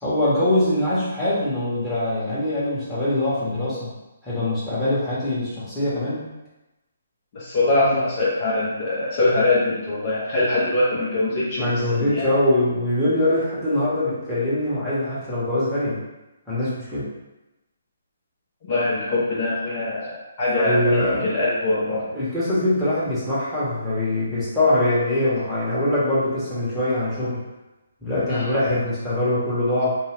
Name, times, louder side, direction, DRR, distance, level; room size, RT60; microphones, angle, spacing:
voice 1, 0.0-3.9 4.2-6.3 11.5-16.0 16.5-17.1 20.5-21.3 21.7-27.4 28.0-30.0, left 1 dB, 5° left, -13 dB, 1.1 m, -23 dB
voice 2, 7.3-12.3 18.6-20.8 21.2-22.0 28.3-28.5, left 2 dB, 40° left, -7 dB, 0.8 m, -23 dB
2.6 x 2.2 x 3.3 m, 1.0 s
hypercardioid pair, 145°, 0 cm